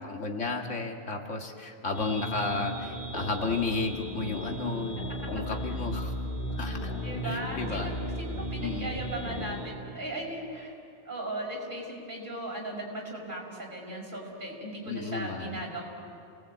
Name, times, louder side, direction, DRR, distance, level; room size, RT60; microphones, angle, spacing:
voice 1, 0.0-5.0 5.3-6.1 6.6-6.9 7.2-7.9 8.6-9.0 14.9-15.6, left 3 dB, 85° left, 2 dB, 2.3 m, -33 dB
sound 1, 1.9-9.7, equal, 50° left, 2.9 m, -35 dB
voice 2, 7.0-10.7 11.0-15.8, right 1 dB, 40° right, -2 dB, 5.7 m, -37 dB
29.5 x 19.0 x 8.4 m, 2.5 s
omnidirectional pair, 1.2 m